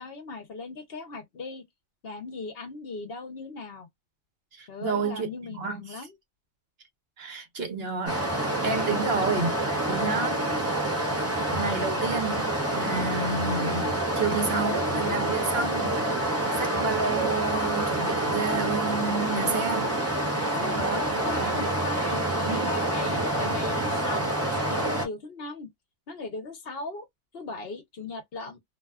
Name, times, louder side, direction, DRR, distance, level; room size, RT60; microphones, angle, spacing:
voice 1, 0.0-1.6 2.0-3.9 4.7-6.2 20.4-20.9 21.2-25.7 26.1-27.1 27.3-28.6, left 3 dB, 60° left, 0.9 m, -38 dB
voice 2, 4.5-5.3 5.6-6.1 7.2-9.5 9.9-10.4 11.5-16.2 16.6-20.0 20.6-21.0 21.4-21.6 22.5-22.7, right 4 dB, 60° right, 1.1 m, -30 dB
Stream, 8.1-25.1, right 1 dB, 15° right, 0.5 m, -27 dB
2.6 x 2.3 x 2.3 m
omnidirectional pair, 1.2 m